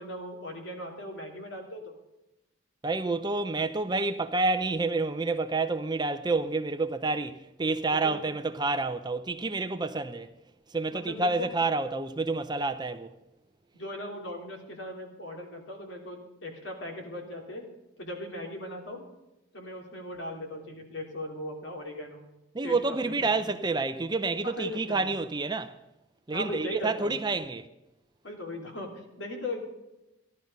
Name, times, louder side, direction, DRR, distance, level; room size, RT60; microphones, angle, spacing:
voice 1, 0.0-2.0 7.9-8.2 10.9-11.5 13.7-17.6 18.0-19.0 19.5-22.2 22.6-23.1 23.4-23.5 24.4-25.1 26.3-27.2 28.2-29.6, left 1 dB, 60° left, 3.1 m, -38 dB
voice 2, 2.8-10.3 10.7-13.1 22.5-25.7 26.3-27.7, right 3 dB, 20° right, 0.5 m, -29 dB
15.0 x 12.0 x 5.4 m
head